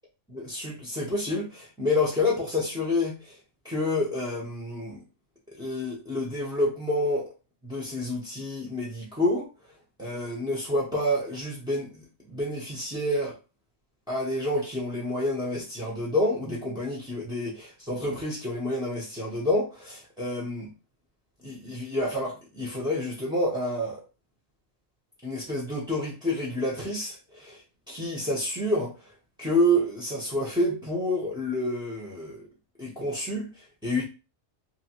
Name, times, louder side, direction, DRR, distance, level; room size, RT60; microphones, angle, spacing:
voice 1, 0.3-3.3 3.6-5.0 5.6-7.3 7.6-9.5 10.0-13.3 14.1-20.7 21.4-24.0 25.2-27.6 27.9-28.9 29.4-32.5 32.8-33.5 33.8-34.0, left 1 dB, 5° right, 0.4 m, -28 dB
2.8 x 2.5 x 2.8 m
omnidirectional pair, 1.4 m